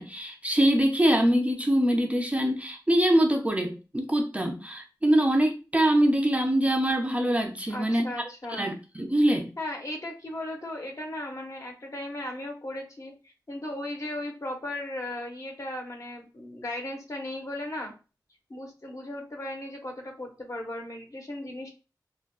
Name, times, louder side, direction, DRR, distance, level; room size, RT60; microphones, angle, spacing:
voice 1, 0.0-9.5, right 1 dB, 15° right, 0.4 m, -24 dB
voice 2, 7.7-8.7 9.6-17.9 18.5-21.7, left 1 dB, 45° left, 0.8 m, -36 dB
3.4 x 2.2 x 2.3 m
wide cardioid pair, 90°, 8 cm